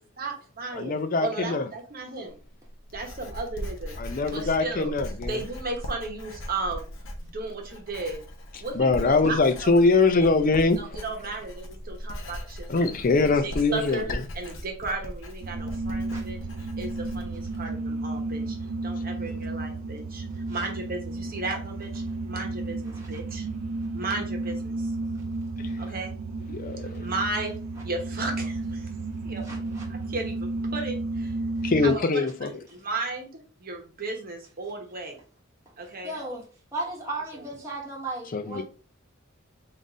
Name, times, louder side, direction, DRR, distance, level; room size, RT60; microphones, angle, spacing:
voice 1, 0.2-2.4 2.9-4.0 4.3-4.9 5.2-6.9 7.2-8.2 8.6-9.7 10.1-10.3 10.8-14.1 14.3-16.4 16.8-18.6 18.8-23.5 23.9-24.9 25.8-26.1 26.8-27.5 27.8-28.9 29.2-29.5 29.9-31.4 31.8-33.3 33.6-35.2 35.8-36.1, right 3 dB, 45° right, 0.9 m, -35 dB
voice 2, 0.8-1.7 4.0-5.4 8.7-10.8 12.7-14.2 26.5-27.0 31.6-32.5 38.3-38.6, left 3 dB, 40° left, 0.5 m, -23 dB
Writing, 2.3-17.6, equal, 65° left, 0.8 m, -39 dB
sound 1, 15.4-32.0, right 2 dB, 65° right, 0.4 m, -33 dB
voice 3, 29.5-29.8 36.0-36.4 36.7-38.6, right 2 dB, 15° right, 1.0 m, -35 dB
3.8 x 2.5 x 3.9 m
head